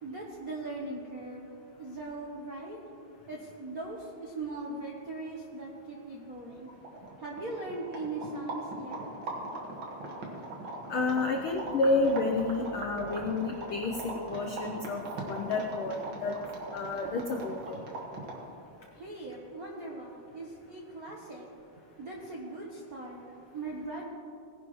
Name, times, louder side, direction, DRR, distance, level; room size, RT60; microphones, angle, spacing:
voice 1, 0.0-6.7 7.2-9.1 18.9-24.1, right 2 dB, 65° right, -3 dB, 0.9 m, -40 dB
sound 1, 6.5-6.6 6.8-18.5, right 2 dB, 45° right, 2.0 m, -40 dB
voice 2, 10.9-16.4 16.7-17.8, left 3 dB, 85° left, 3 dB, 1.1 m, -30 dB
19.0 x 10.5 x 3.1 m, 2.5 s
omnidirectional pair, 3.3 m